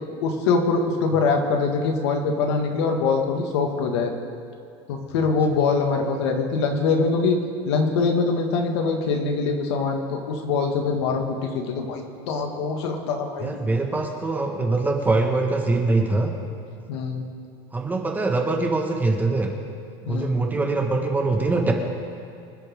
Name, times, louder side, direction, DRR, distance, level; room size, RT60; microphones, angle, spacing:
voice 1, 0.2-4.1 4.9-7.4 7.6-13.6 16.9-17.2 20.1-20.4, left 4 dB, 85° left, 3 dB, 2.1 m, -23 dB
voice 2, 13.4-16.3 17.7-19.5 20.0-21.7, right 3 dB, 15° right, 2 dB, 1.7 m, -23 dB
25.5 x 10.5 x 3.8 m, 2.6 s
supercardioid pair, 140°, 14 cm